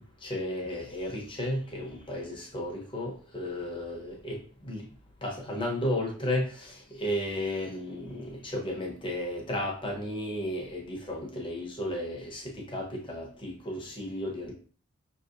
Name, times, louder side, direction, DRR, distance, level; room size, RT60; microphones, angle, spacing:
voice 1, 0.2-4.9 5.2-14.5, left 1 dB, 20° left, -1 dB, 0.9 m, -34 dB
5.7 x 2.8 x 2.5 m, 0.43 s
head